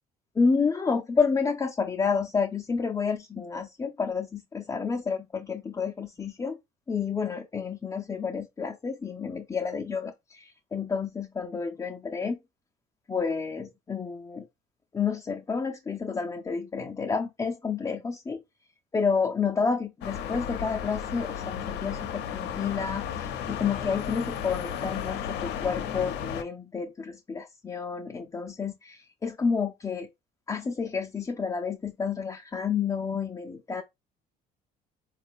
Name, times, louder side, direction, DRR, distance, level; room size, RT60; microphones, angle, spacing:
voice 1, 0.4-6.6 6.9-12.4 13.1-14.5 14.9-18.4 18.9-30.1 30.5-33.8, left 5 dB, 20° left, 0.5 m, -30 dB
sound 1, 20.0-26.4, left 8 dB, 75° left, 0.6 m, -34 dB
4.0 x 2.3 x 3.5 m
cardioid pair, 105°, 18 cm